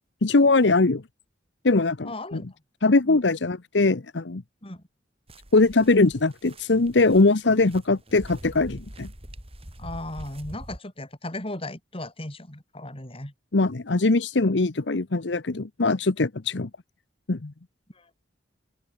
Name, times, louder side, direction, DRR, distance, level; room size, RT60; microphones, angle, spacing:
voice 1, 0.2-1.0 1.6-2.4 2.8-4.4 5.5-9.1 13.5-16.7 17.3-17.5, left 3 dB, 75° left, 0.9 m, -21 dB
voice 2, 2.0-2.4 3.0-3.2 4.6-4.8 9.8-13.3 16.6-16.7 18.0-18.1, left 1 dB, 30° left, 5.2 m, -36 dB
sound 1, 5.3-10.8, equal, 35° right, 5.7 m, -43 dB
open air
head